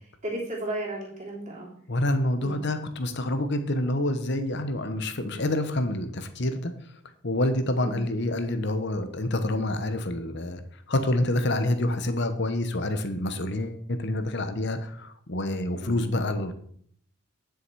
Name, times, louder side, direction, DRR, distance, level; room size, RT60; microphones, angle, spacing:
voice 1, 0.2-1.7 2.4-2.6 7.8-8.0 15.7-15.9, right 1 dB, 30° right, -4 dB, 3.2 m, -34 dB
voice 2, 1.9-6.7 7.2-10.6 10.9-16.5, left 1 dB, 50° left, 9 dB, 1.0 m, -27 dB
10.0 x 6.6 x 4.7 m, 0.64 s
head